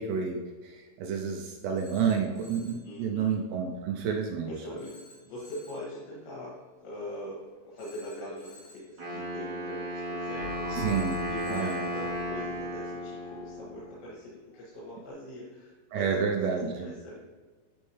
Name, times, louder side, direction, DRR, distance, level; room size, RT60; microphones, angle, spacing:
voice 1, 0.0-4.5 10.7-11.1 11.5-11.7 15.9-16.9, right 6 dB, 80° right, 2 dB, 2.5 m, -30 dB
Telephone, 1.8-2.9 4.8-5.9 7.8-8.9 10.8-11.9, left 2 dB, 30° left, 1.3 m, -54 dB
voice 2, 2.8-3.4 4.5-17.3, left 1 dB, 80° left, -8 dB, 4.2 m, -42 dB
Wind instrument woodwind instrument, 9.0-13.9, equal, 60° right, 1.1 m, -35 dB
sound 1, 10.3-14.0, left 4 dB, 55° left, 3.3 m, -43 dB
11.5 x 4.4 x 3.2 m, 1.4 s
omnidirectional pair, 5.0 m